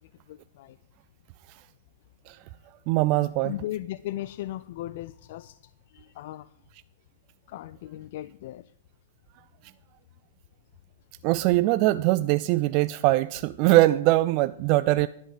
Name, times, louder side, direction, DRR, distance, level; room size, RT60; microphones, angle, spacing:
voice 1, 0.3-0.8 3.4-5.6 5.9-6.5 7.5-8.7 15.0-15.1, left 14 dB, 55° left, 16 dB, 0.3 m, -37 dB
voice 2, 2.9-3.5 11.2-15.1, right 18 dB, 40° right, 14 dB, 0.3 m, -22 dB
11.0 x 5.1 x 7.9 m, 0.70 s
hypercardioid pair, 140°, 0 cm